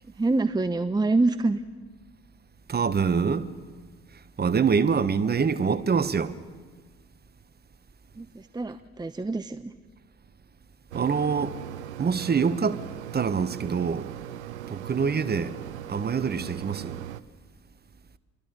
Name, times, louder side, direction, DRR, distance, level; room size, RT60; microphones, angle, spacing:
voice 1, 0.2-1.6 8.2-9.7, right 3 dB, 10° right, 0.9 m, -26 dB
voice 2, 2.7-3.4 4.4-6.3 10.9-11.5 12.0-12.8 13.1-14.1 14.7-15.6 15.9-17.0, right 6 dB, 30° right, 1.4 m, -25 dB
Mechanisms, 10.9-17.2, right 11 dB, 80° right, 0.7 m, -39 dB
27.5 x 23.0 x 6.8 m
figure-of-eight pair, 50°, 33 cm